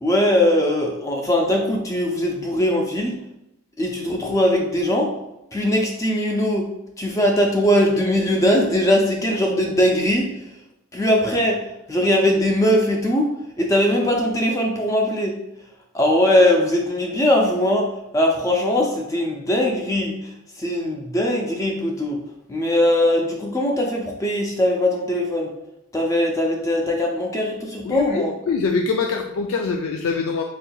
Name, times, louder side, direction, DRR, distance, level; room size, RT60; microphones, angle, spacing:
voice 1, 0.0-3.2 3.8-5.1 5.5-6.7 7.0-10.3 10.9-15.4 15.9-22.2 22.5-25.5 25.9-28.3, left 1 dB, 15° left, 0 dB, 0.4 m, -20 dB
voice 2, 27.8-30.4, left 4 dB, 80° left, 3 dB, 0.3 m, -24 dB
4.1 x 3.7 x 2.3 m, 0.84 s
head